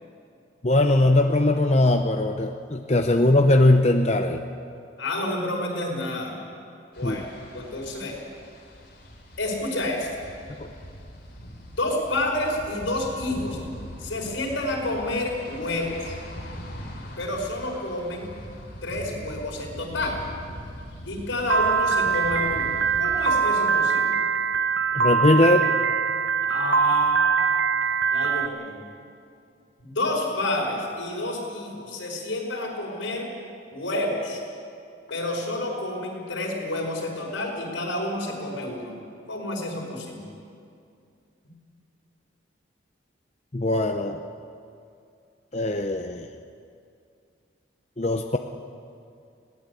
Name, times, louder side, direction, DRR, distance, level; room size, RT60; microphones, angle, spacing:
voice 1, 0.6-4.4 7.0-7.2 10.6-10.7 24.9-25.7 43.5-44.2 45.5-46.3 48.0-48.4, left 2 dB, 35° left, 5 dB, 0.7 m, -20 dB
voice 2, 5.0-6.4 7.0-8.2 9.4-10.1 11.8-13.6 14.0-16.2 17.2-18.3 18.8-20.1 21.1-22.7 23.0-24.2 26.5-27.4 28.1-28.8 29.8-33.3 33.7-34.4 35.1-38.9 39.3-40.3, left 1 dB, 80° left, -1 dB, 5.4 m, -29 dB
sound 1, 6.9-23.2, equal, 50° left, 4.4 m, -41 dB
Piano, 21.5-28.5, right 5 dB, 70° right, 0.7 m, -23 dB
21.0 x 18.0 x 8.4 m, 2.4 s
head